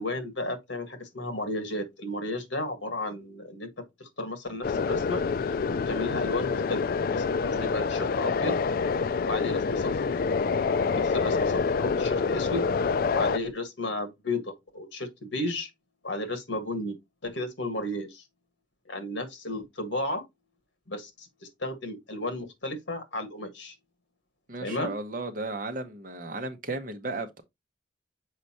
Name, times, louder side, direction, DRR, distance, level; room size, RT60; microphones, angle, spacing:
voice 1, 0.0-3.7 4.0-5.2 5.7-6.8 7.1-8.6 9.2-9.9 10.9-12.7 13.1-15.7 16.0-17.0 17.2-18.2 18.9-20.2 20.9-21.3 21.6-23.7 24.6-24.9, left 2 dB, 70° left, 1.6 m, -33 dB
sound 1, 4.6-13.4, left 5 dB, 50° left, 0.3 m, -27 dB
voice 2, 24.5-27.4, right 2 dB, 45° right, 1.1 m, -34 dB
6.6 x 5.0 x 2.9 m
head